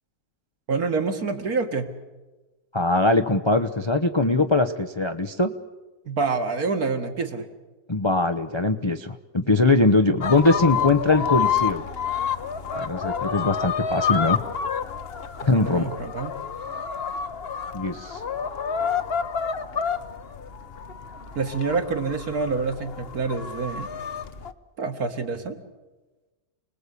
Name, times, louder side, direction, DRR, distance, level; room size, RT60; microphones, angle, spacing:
voice 1, 0.7-1.9 6.1-7.5 15.6-16.3 21.4-23.9 24.8-25.6, right 4 dB, 60° right, 5 dB, 2.3 m, -27 dB
voice 2, 2.7-5.5 7.9-11.8 12.7-14.4 15.5-16.0 17.7-18.2, left 2 dB, 25° left, 7 dB, 0.6 m, -21 dB
sound 1, 10.2-24.5, left 7 dB, 40° left, 1.0 m, -29 dB
29.0 x 20.0 x 8.4 m, 1.2 s
omnidirectional pair, 1.8 m